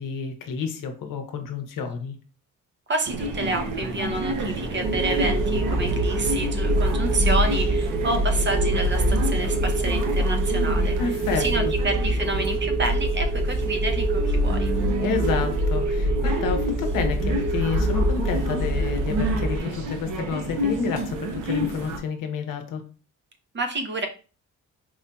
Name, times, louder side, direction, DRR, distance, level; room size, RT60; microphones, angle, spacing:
voice 1, 0.0-2.2 11.0-11.7 15.0-22.8, left 6 dB, 75° left, 6 dB, 0.8 m, -30 dB
voice 2, 2.9-10.9 11.4-14.7 23.5-24.1, right 2 dB, 35° right, 4 dB, 0.7 m, -29 dB
sound 1, 3.1-22.0, right 2 dB, 65° right, 0.7 m, -31 dB
sound 2, 4.8-19.6, right 1 dB, 10° right, 0.4 m, -24 dB
4.5 x 2.7 x 2.2 m, 0.36 s
cardioid pair, 80°, 33 cm